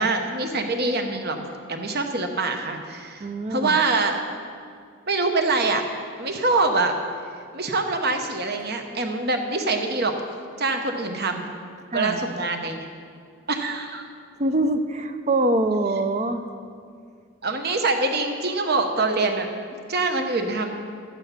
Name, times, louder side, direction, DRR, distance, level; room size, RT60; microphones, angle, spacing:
voice 1, 0.0-1.4 1.7-3.2 3.5-4.2 5.1-5.8 6.2-7.0 7.5-10.1 10.6-11.4 11.9-12.9 13.5-14.0 17.4-19.5 19.9-20.7, right 3 dB, 50° right, 5 dB, 1.1 m, -24 dB
voice 2, 3.2-3.8 11.9-12.2 14.4-16.4, right 2 dB, 35° right, 8 dB, 0.6 m, -24 dB
12.5 x 8.8 x 5.8 m, 2.2 s
head